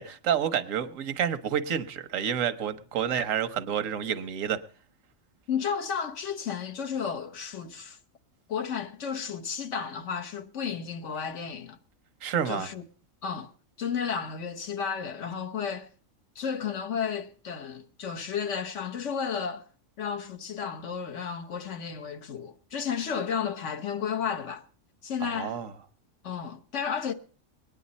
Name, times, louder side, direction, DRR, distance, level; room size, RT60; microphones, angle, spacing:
voice 1, 0.0-4.6 12.2-12.7 25.2-25.7, right 8 dB, 85° right, 1.3 m, -29 dB
voice 2, 5.5-8.0 8.5-11.8 12.4-12.8 13.2-13.5 13.8-15.9 16.4-19.6 20.0-24.6 25.0-25.6 26.2-27.1, left 7 dB, 70° left, 1.3 m, -32 dB
21.5 x 9.8 x 4.1 m
omnidirectional pair, 1.3 m